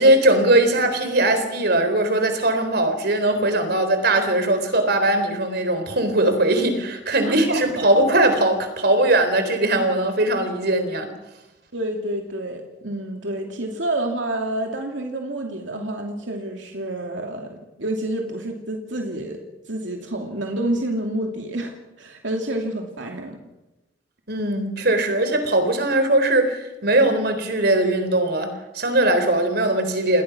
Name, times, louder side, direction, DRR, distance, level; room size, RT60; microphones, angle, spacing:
voice 1, 0.0-11.1 24.3-28.5 28.7-30.2, right 1 dB, 60° right, 8 dB, 3.9 m, -20 dB
voice 2, 7.2-8.1 11.7-19.4 19.7-21.7 22.0-23.4, right 1 dB, 80° right, 2 dB, 2.7 m, -28 dB
28.5 x 21.0 x 6.0 m, 1.0 s
head